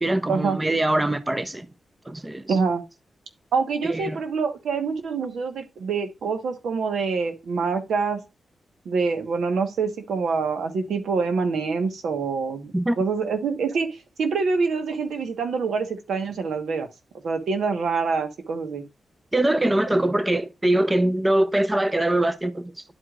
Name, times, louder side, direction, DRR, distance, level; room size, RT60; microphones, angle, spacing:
voice 1, 0.0-1.7 2.1-2.6 3.9-4.2 12.7-13.0 19.3-22.7, right 1 dB, 15° right, 0.6 m, -23 dB
voice 2, 2.5-2.8 3.5-8.2 8.8-16.9 17.2-18.8, right 4 dB, 90° right, 1.2 m, -26 dB
11.0 x 4.9 x 2.4 m
wide cardioid pair, 100°, 0 cm